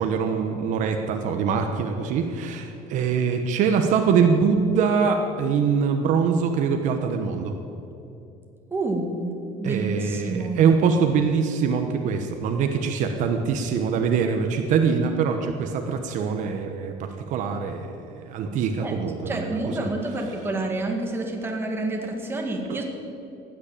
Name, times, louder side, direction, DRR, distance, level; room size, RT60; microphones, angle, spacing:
voice 1, 0.0-7.5 9.6-19.9, right 6 dB, 55° right, 5 dB, 1.1 m, -23 dB
voice 2, 8.7-10.7 18.8-19.0 19.3-22.8, right 2 dB, 15° right, 1 dB, 2.0 m, -29 dB
15.0 x 9.6 x 8.9 m, 2.7 s
cardioid pair, 155°, 15 cm